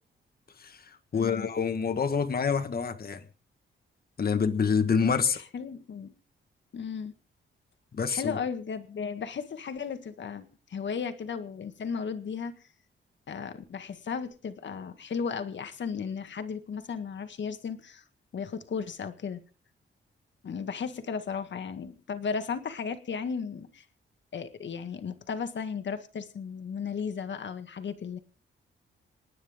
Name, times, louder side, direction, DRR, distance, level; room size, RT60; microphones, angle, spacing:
voice 1, 0.6-3.2 4.2-5.4 7.9-8.4, left 6 dB, 50° left, 1.6 m, -27 dB
voice 2, 1.1-1.5 5.3-6.1 6.7-7.1 8.1-12.5 13.3-18.0 18.3-19.4 20.4-23.9 24.3-28.2, left 6 dB, 65° left, 1.8 m, -35 dB
27.5 x 9.7 x 3.6 m
cardioid pair, 95°, 20 cm